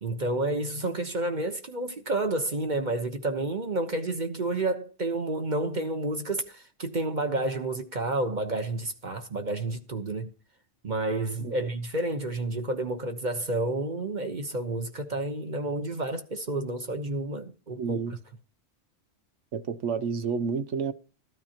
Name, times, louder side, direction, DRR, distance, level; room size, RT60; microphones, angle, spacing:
voice 1, 0.0-10.3 10.8-18.0, right 2 dB, 40° right, 1.2 m, -30 dB
voice 2, 17.8-18.1 19.5-20.9, right 6 dB, 75° right, 1.2 m, -30 dB
13.5 x 13.0 x 2.9 m
omnidirectional pair, 1.2 m